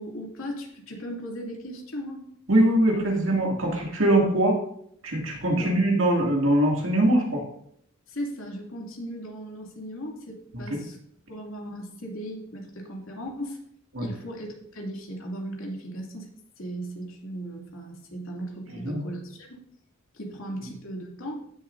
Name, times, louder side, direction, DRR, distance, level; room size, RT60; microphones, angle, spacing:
voice 1, 0.0-2.3 5.6-5.8 8.1-11.0 11.3-13.6 14.0-16.3 16.6-19.6 20.1-21.4, equal, 80° left, -1 dB, 2.6 m, -37 dB
voice 2, 2.5-4.6 5.0-7.4 10.7-10.8 13.9-14.1 18.8-19.0, right 1 dB, 70° right, 0 dB, 2.4 m, -22 dB
15.0 x 7.1 x 2.7 m, 0.69 s
head